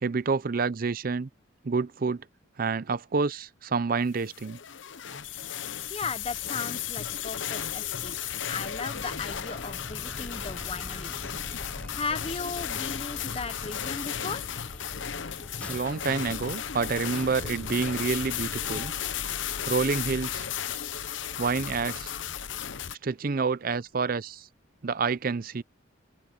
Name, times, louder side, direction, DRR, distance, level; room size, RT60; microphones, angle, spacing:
voice 1, 0.0-1.3 1.6-2.3 2.6-4.6 15.7-18.9 19.7-20.5 21.4-22.1 23.0-24.5 24.8-25.6, right 4 dB, 50° right, 0.5 m, -28 dB
sound 1, 4.2-23.0, left 9 dB, 75° left, 0.9 m, -34 dB
voice 2, 5.9-8.2 8.5-11.3 11.9-14.5, left 4 dB, 30° left, 1.0 m, -36 dB
sound 2, 8.9-18.9, equal, 5° left, 0.8 m, -45 dB
sound 3, 13.0-22.4, left 1 dB, 50° left, 6.9 m, -55 dB
open air
head